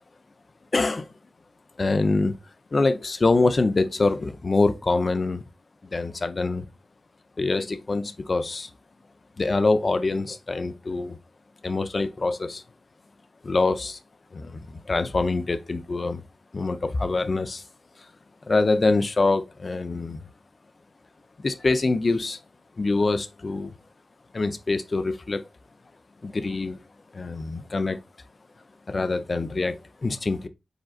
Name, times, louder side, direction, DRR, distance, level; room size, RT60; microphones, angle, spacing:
voice 1, 0.7-1.1 1.8-2.4 2.7-5.4 5.9-6.7 7.4-8.7 9.4-11.2 11.6-12.6 13.4-14.0 14.3-16.2 16.5-17.6 18.5-20.2 21.4-22.4 22.8-23.7 24.3-25.4 26.2-26.8 27.1-28.0 28.9-30.5, left 3 dB, 40° left, 0.6 m, -24 dB
5.0 x 3.9 x 2.3 m
wide cardioid pair, 105°, 0 cm